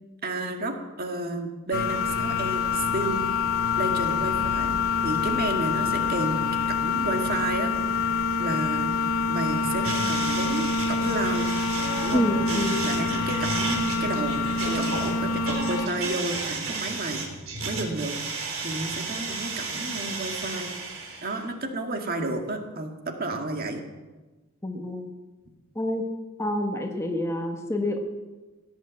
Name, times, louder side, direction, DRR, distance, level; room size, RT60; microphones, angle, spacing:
voice 1, 0.2-3.2 3.8-4.7 5.0-7.7 8.4-9.0 9.3-11.5 12.0-12.3 12.8-14.4 14.6-17.3 17.6-18.2 18.6-20.7 21.2-23.8, right 2 dB, 45° right, 3 dB, 2.0 m, -31 dB
sound 1, 1.7-15.9, left 4 dB, 65° left, 1.4 m, -26 dB
sound 2, 9.8-21.4, right 3 dB, 70° right, 3.6 m, -33 dB
voice 2, 12.1-12.9 24.6-25.1 25.7-26.0 26.4-28.0, left 1 dB, 15° left, 3 dB, 1.4 m, -27 dB
17.0 x 10.5 x 7.6 m, 1.2 s
head